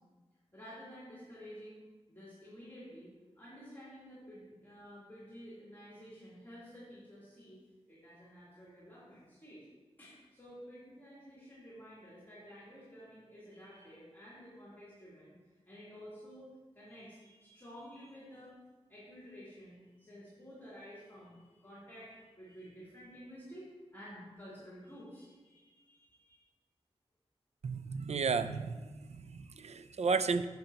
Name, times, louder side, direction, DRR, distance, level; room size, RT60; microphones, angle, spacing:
voice 1, 0.5-1.8 2.1-7.6 7.9-9.6 10.0-15.4 15.6-16.5 16.7-18.5 18.9-26.4, equal, 20° left, -10 dB, 3.1 m, -52 dB
voice 2, 27.6-28.8 29.1-30.4, right 5 dB, 80° right, 12 dB, 0.4 m, -33 dB
11.5 x 7.9 x 2.9 m, 1.3 s
wide cardioid pair, 95°, 11 cm